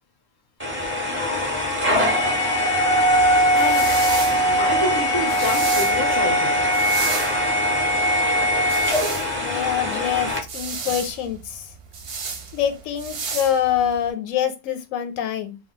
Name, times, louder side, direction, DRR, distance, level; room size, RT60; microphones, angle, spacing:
sound 1, 0.6-10.4, equal, 15° right, 0.5 m, -21 dB
sound 2, 3.1-14.1, right 5 dB, 60° right, 0.8 m, -33 dB
voice 1, 3.5-6.7, left 2 dB, 40° left, 0.3 m, -29 dB
voice 2, 9.3-11.7 12.5-15.6, left 9 dB, 90° left, 1.0 m, -25 dB
2.2 x 2.1 x 3.6 m
omnidirectional pair, 1.3 m